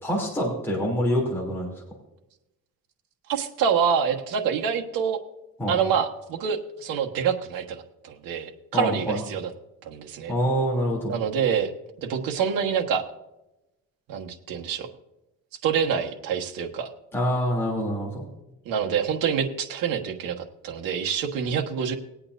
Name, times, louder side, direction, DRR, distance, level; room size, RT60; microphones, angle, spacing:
voice 1, 0.0-1.7 5.6-5.8 8.7-9.2 10.3-11.1 17.1-18.3, equal, 5° left, -3 dB, 2.9 m, -25 dB
voice 2, 3.3-5.2 5.7-9.5 9.8-10.3 11.1-11.7 12.0-13.0 14.1-14.9 15.6-16.9 18.6-21.9, right 7 dB, 80° right, 3 dB, 1.4 m, -26 dB
20.5 x 8.8 x 2.6 m, 0.94 s
cardioid pair, 150°, 33 cm